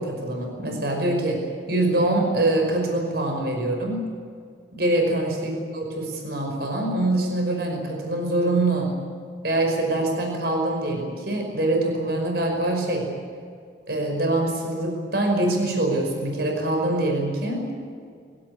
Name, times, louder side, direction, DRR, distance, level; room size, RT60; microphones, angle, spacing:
voice 1, 0.0-1.4 1.7-4.0 4.8-8.9 9.4-13.1 13.9-17.7, right 2 dB, 60° right, 2 dB, 5.5 m, -24 dB
23.5 x 17.0 x 9.7 m, 2.2 s
head